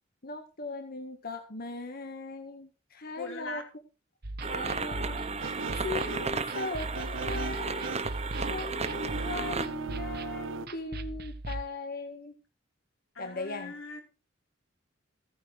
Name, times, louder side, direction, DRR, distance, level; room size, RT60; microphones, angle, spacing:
voice 1, 0.2-3.6 4.5-5.6 5.8-8.0 8.5-12.3 13.2-13.7, left 2 dB, 50° left, 5 dB, 1.7 m, -39 dB
voice 2, 3.2-3.7 13.1-14.0, left 4 dB, 80° left, 3 dB, 5.1 m, -40 dB
sound 1, 4.2-11.6, right 2 dB, 55° right, 1.3 m, -39 dB
sound 2, 4.4-9.7, right 4 dB, 35° right, 1.3 m, -34 dB
sound 3, 5.4-10.7, right 3 dB, 80° right, 0.9 m, -39 dB
15.5 x 10.0 x 5.0 m, 0.33 s
head